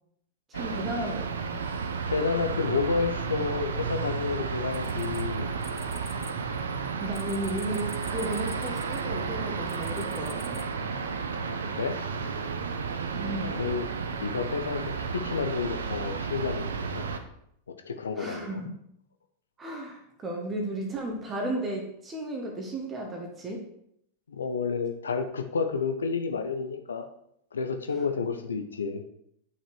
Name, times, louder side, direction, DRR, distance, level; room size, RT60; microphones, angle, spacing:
voice 1, 0.5-1.6 7.0-10.7 13.2-13.7 18.2-18.7 19.6-23.7, right 1 dB, 20° right, 0 dB, 1.5 m, -34 dB
sound 1, 0.5-17.2, right 5 dB, 65° right, 0.7 m, -32 dB
voice 2, 2.1-5.5 11.5-12.0 13.4-13.9 14.2-17.0 17.9-18.6 24.3-27.1 27.5-29.0, left 5 dB, 70° left, 7 dB, 0.7 m, -30 dB
sound 2, 4.7-6.3 6.6-9.2 9.7-10.6, left 3 dB, 10° left, 0.9 m, -48 dB
8.1 x 5.8 x 4.7 m, 0.73 s
figure-of-eight pair, 90°, 0 cm